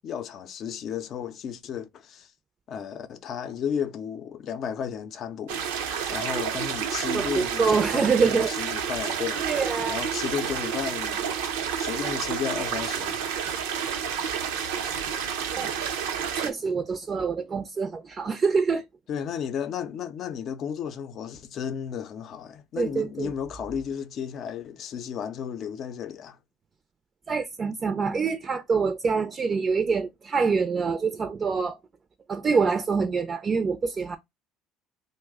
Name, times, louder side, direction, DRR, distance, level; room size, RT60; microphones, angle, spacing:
voice 1, 0.0-2.3 2.7-5.7 6.1-9.4 9.9-11.3 11.8-13.2 19.1-26.4, left 8 dB, 55° left, 0.5 m, -33 dB
sound 1, 5.5-16.5, right 7 dB, 90° right, 0.6 m, -30 dB
voice 2, 7.1-8.5 9.4-10.0 15.6-15.7 16.3-18.8 22.8-23.3 27.3-31.8 32.3-34.2, right 5 dB, 35° right, 0.5 m, -25 dB
3.1 x 2.1 x 3.5 m
supercardioid pair, 90°, 0 cm